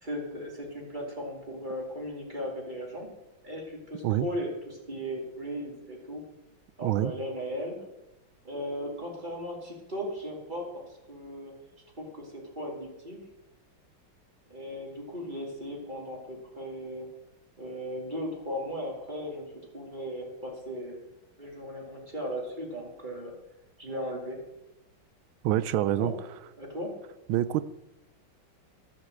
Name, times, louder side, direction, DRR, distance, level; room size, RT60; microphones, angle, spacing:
voice 1, 0.0-3.1 3.4-6.2 6.8-7.7 8.4-10.8 11.1-11.5 12.0-13.2 14.5-17.1 17.6-19.4 19.7-21.0 21.4-23.3 23.8-24.4 26.0-26.1 26.6-26.9, equal, 25° right, -1 dB, 2.5 m, -37 dB
voice 2, 6.8-7.1 25.4-26.1 27.3-27.6, right 13 dB, 80° right, 15 dB, 1.4 m, -26 dB
11.0 x 7.4 x 7.6 m, 0.94 s
omnidirectional pair, 2.2 m